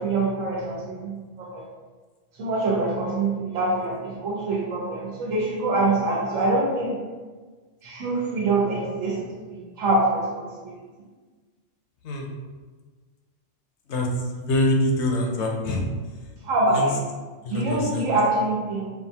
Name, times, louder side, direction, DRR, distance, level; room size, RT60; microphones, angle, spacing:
voice 1, 0.0-1.6 2.4-7.0 7.8-9.2 9.5-10.7 16.4-17.0 17.5-18.8, right 2 dB, 85° right, -2 dB, 1.3 m, -25 dB
voice 2, 14.3-15.8 16.7-16.8 17.5-18.0, left 1 dB, 65° left, 0 dB, 0.9 m, -24 dB
5.4 x 2.4 x 2.8 m, 1.4 s
omnidirectional pair, 1.3 m